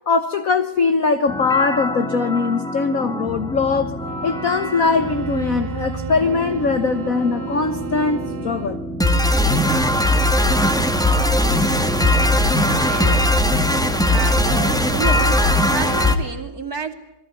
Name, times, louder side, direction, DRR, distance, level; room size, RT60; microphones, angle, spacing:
voice 1, 0.1-4.0 4.2-8.8 13.1-13.2, left 4 dB, 45° left, 1.3 m, -21 dB
sound 1, 1.3-16.2, left 1 dB, ahead, 1.8 m, -21 dB
sound 2, 4.1-8.9, right 8 dB, 80° right, 3.3 m, -35 dB
voice 2, 12.7-13.3 14.1-15.4 15.7-16.9, right 5 dB, 45° right, 2.9 m, -30 dB
28.5 x 21.5 x 9.5 m
omnidirectional pair, 2.4 m